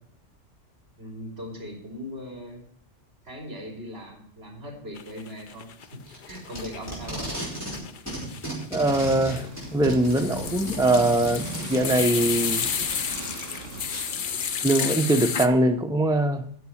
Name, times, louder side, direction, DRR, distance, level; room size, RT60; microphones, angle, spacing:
voice 1, 1.0-2.7 3.2-5.9 6.3-7.3, equal, 55° right, 3.5 m, -39 dB
sound 1, 5.0-6.0 6.2-15.5, left 7 dB, 50° left, 0.7 m, -32 dB
Packing tape duct tape, 6.1-7.8 8.1-13.1 13.9-14.0, right 1 dB, 10° left, 4.8 m, -35 dB
voice 2, 8.7-9.4 9.7-12.7 14.6-16.4, right 1 dB, 5° right, 0.5 m, -22 dB
sound 2, 8.8-14.7, right 3 dB, 85° right, 2.0 m, -39 dB
9.4 x 7.3 x 7.1 m
omnidirectional pair, 1.3 m